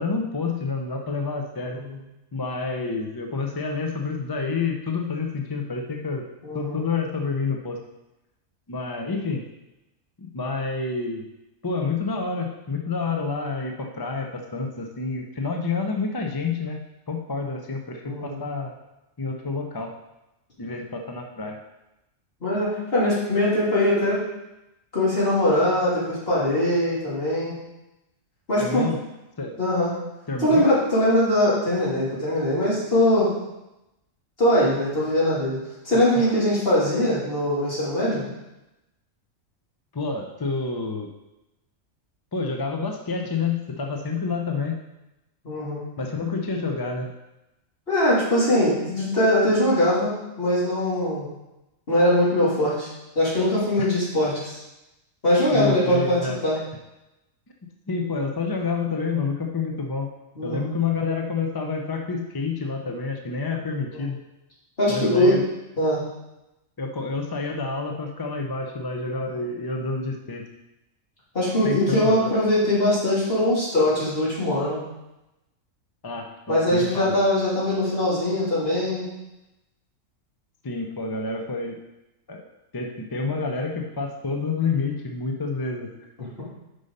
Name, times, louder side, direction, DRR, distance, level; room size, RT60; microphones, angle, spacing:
voice 1, 0.0-1.8 2.3-6.2 6.5-7.8 8.7-9.4 10.2-11.3 11.6-16.8 17.1-18.7 19.2-19.9 20.6-21.6 28.6-29.0 29.4-29.6 30.3-30.7 35.9-36.3 39.9-41.1 42.3-44.8 46.0-47.1 53.8-53.9 55.5-56.4 57.9-60.1 60.4-64.2 64.9-65.4 66.8-70.4 71.6-72.3 76.0-77.1 80.6-81.8 82.3-82.4 82.7-85.9, left 4 dB, 30° left, 3 dB, 0.4 m, -28 dB
voice 2, 6.4-6.8 18.0-18.4 22.4-24.2 24.9-27.5 28.5-28.9 29.6-29.9 30.4-33.3 34.4-35.6 35.8-38.2 45.4-45.8 47.9-51.3 51.9-52.9 53.1-54.6 55.2-56.6 60.4-60.7 64.8-65.3 65.8-66.0 71.3-74.8 76.5-79.1, left 1 dB, 45° left, -8 dB, 3.1 m, -21 dB
6.8 x 5.5 x 5.4 m, 0.95 s
omnidirectional pair, 1.4 m